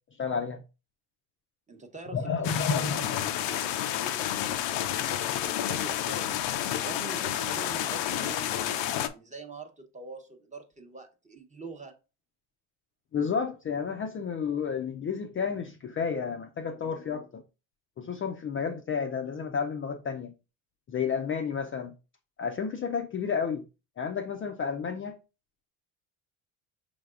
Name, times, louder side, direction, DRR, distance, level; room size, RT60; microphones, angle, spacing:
voice 1, 0.2-0.6 2.1-3.0 13.1-17.4 18.0-20.3 20.9-21.9 22.4-23.6 24.0-25.2, left 6 dB, 30° left, 0.5 m, -31 dB
voice 2, 1.7-6.4 6.8-11.9, right 3 dB, 15° right, 0.9 m, -44 dB
sound 1, 2.4-9.1, left 11 dB, 80° left, 0.6 m, -30 dB
5.2 x 3.4 x 2.4 m
supercardioid pair, 85°, 43 cm